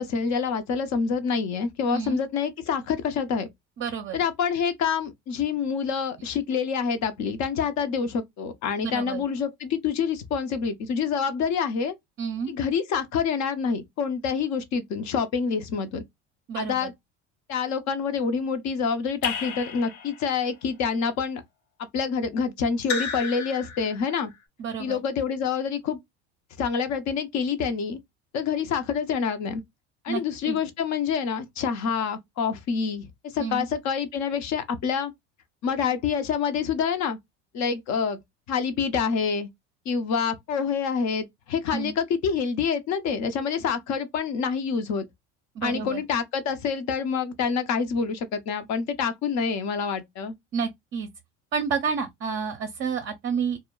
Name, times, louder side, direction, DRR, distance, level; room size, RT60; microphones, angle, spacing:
voice 1, 0.0-3.5 4.1-11.9 12.5-16.0 16.5-16.9 17.5-21.4 21.9-24.3 24.8-26.0 26.6-28.0 28.3-29.6 30.0-33.1 33.3-35.1 35.6-37.2 37.5-38.2 38.5-39.5 39.9-45.0 45.6-50.3, left 6 dB, 50° left, 0.7 m, -27 dB
voice 2, 3.8-4.2 8.8-9.2 12.2-12.5 16.5-16.9 24.6-25.0 30.1-30.2 30.5-30.6 33.4-33.7 41.7-41.9 45.6-46.0 50.5-51.1 51.5-53.6, right 6 dB, 35° right, 0.6 m, -29 dB
Raindrop / Drip, 19.2-20.5 22.8-24.2, left 6 dB, 80° left, 1.0 m, -33 dB
2.2 x 2.1 x 3.6 m
hypercardioid pair, 75°, 36 cm